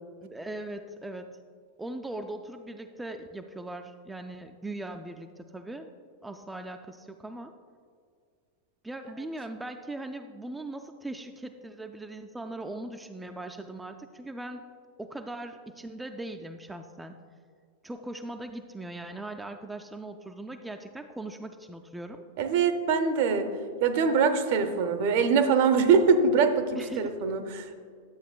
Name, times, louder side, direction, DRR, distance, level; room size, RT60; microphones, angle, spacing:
voice 1, 0.2-1.4 1.8-5.9 6.2-7.5 8.8-14.7 15.0-17.2 17.8-22.3 26.8-27.1, right 2 dB, 5° right, 6 dB, 0.3 m, -39 dB
voice 2, 22.4-23.5 23.8-27.8, right 5 dB, 50° right, 8 dB, 0.6 m, -23 dB
11.0 x 7.5 x 2.2 m, 2.1 s
figure-of-eight pair, 90°, 0 cm